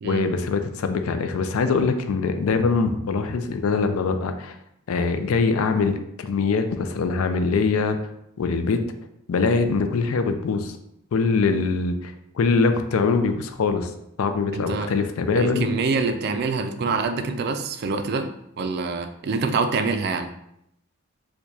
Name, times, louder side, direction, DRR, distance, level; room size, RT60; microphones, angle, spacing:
voice 1, 0.0-4.5 4.9-8.0 8.4-8.8 9.3-10.7 11.1-13.9 14.2-15.7, left 4 dB, 85° left, 8 dB, 0.4 m, -23 dB
voice 2, 14.5-14.9 15.3-18.3 18.6-20.3, right 4 dB, 50° right, 8 dB, 0.3 m, -25 dB
4.5 x 2.2 x 2.7 m, 0.79 s
head